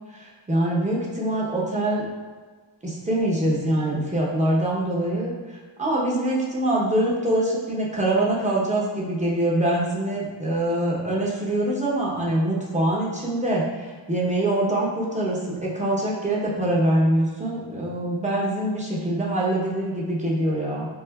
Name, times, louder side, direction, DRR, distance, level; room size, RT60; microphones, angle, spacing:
voice 1, 0.1-2.0 2.8-20.9, right 1 dB, 15° right, -5 dB, 0.8 m, -24 dB
4.5 x 2.5 x 2.3 m, 1.4 s
wide cardioid pair, 70°, 48 cm